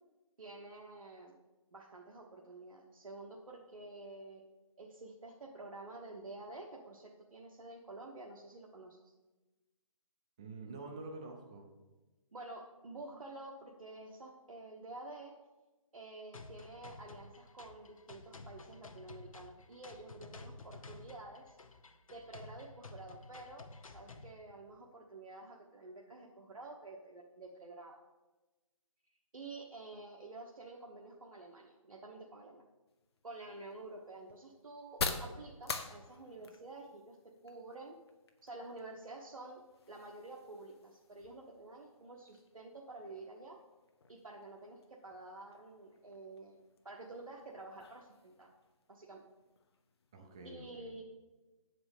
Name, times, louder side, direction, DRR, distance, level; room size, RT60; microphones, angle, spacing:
voice 1, 0.4-1.4 1.7-4.4 4.8-9.1 12.3-15.4 15.9-21.6 22.1-28.0 29.3-32.6 33.2-37.2 37.4-38.0 38.4-39.6 39.9-43.6 44.1-46.6 46.8-48.5 48.9-49.3 50.4-51.0, right 2 dB, 75° right, -1 dB, 1.2 m, -50 dB
voice 2, 10.4-11.7 50.1-50.9, right 3 dB, 10° right, 2 dB, 0.3 m, -47 dB
sound 1, 16.3-24.3, left 3 dB, 75° left, 0.9 m, -52 dB
sound 2, 32.9-50.5, left 4 dB, 50° left, 0.9 m, -48 dB
7.1 x 4.9 x 7.1 m, 1.2 s
figure-of-eight pair, 155°, 17 cm